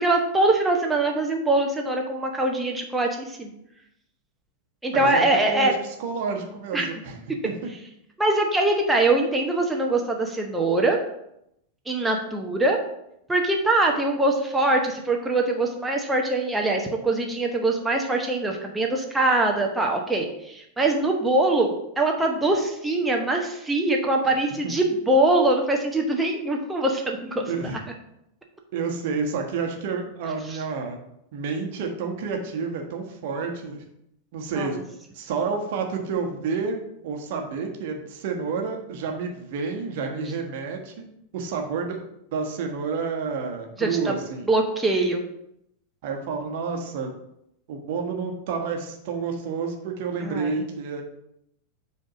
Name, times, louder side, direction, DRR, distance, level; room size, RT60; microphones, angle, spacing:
voice 1, 0.0-3.5 4.8-5.7 6.7-6.9 8.2-11.0 11.9-12.8 13.3-27.4 30.5-30.6 34.5-34.8 43.8-44.1 44.5-45.2 50.2-50.6, right 2 dB, 10° right, 1 dB, 0.9 m, -23 dB
voice 2, 4.9-7.2 7.4-7.5 24.6-24.7 27.2-27.8 28.7-31.0 31.3-33.8 34.3-34.8 35.1-40.9 41.3-42.0 42.3-44.5 46.0-47.1 47.7-51.0, right 5 dB, 50° right, 3 dB, 1.2 m, -29 dB
7.6 x 3.5 x 4.9 m, 0.79 s
figure-of-eight pair, 90°, 0 cm